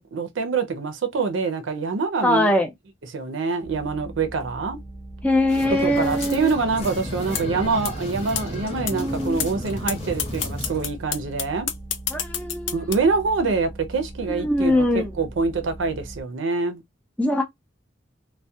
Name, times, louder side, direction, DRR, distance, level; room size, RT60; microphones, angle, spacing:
voice 1, 0.0-2.5 3.1-4.8 5.8-11.7 12.7-16.8, right 4 dB, 80° right, 0.5 m, -25 dB
voice 2, 2.2-2.7 5.2-6.6 8.9-9.5 12.1-13.0 14.3-15.2 17.2-17.4, left 1 dB, 5° left, 0.5 m, -22 dB
sound 1, 3.6-16.2, right 2 dB, 25° right, 0.9 m, -40 dB
sound 2, 5.5-10.9, left 1 dB, 35° left, 0.9 m, -33 dB
sound 3, 7.4-7.5 7.8-7.9 8.4-8.5 8.9-9.0 9.4-9.5 9.9-10.0 10.2-12.9, left 9 dB, 75° left, 0.4 m, -26 dB
2.3 x 2.1 x 2.6 m
head